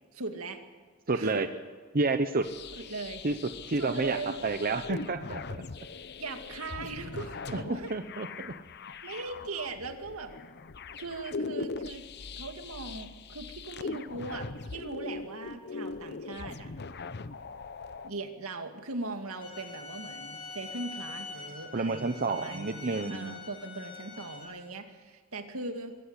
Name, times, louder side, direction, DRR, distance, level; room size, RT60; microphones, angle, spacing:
voice 1, 0.1-0.6 1.1-1.5 2.8-3.3 3.8-4.4 6.2-7.9 9.0-10.3 11.0-12.0 12.4-16.7 18.0-26.0, right 3 dB, 80° right, 5 dB, 2.3 m, -39 dB
voice 2, 1.1-1.5 1.9-2.4 3.2-3.4 3.7-4.2 4.4-5.6 7.5-7.6 7.9-8.5 21.7-23.4, right 3 dB, 45° right, 8 dB, 0.9 m, -29 dB
sound 1, 2.4-18.1, left 4 dB, 50° left, 0.8 m, -41 dB
sound 2, 19.4-24.4, left 4 dB, 25° left, 5.1 m, -44 dB
24.5 x 14.5 x 8.1 m, 1.5 s
head